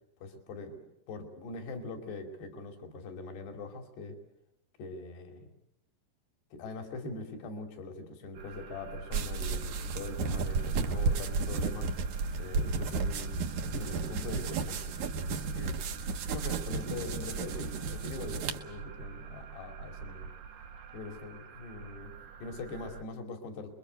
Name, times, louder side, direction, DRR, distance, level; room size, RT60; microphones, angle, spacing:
voice 1, 0.2-0.8 1.1-4.2 4.8-5.5 6.5-11.9 12.4-13.4 13.7-20.3 20.9-23.7, left 3 dB, 80° left, 5 dB, 4.9 m, -42 dB
sound 1, 8.3-23.0, right 6 dB, 75° right, 3.8 m, -46 dB
sound 2, 9.1-18.6, right 4 dB, 60° right, 2.2 m, -33 dB
28.0 x 22.5 x 8.0 m, 0.81 s
omnidirectional pair, 4.7 m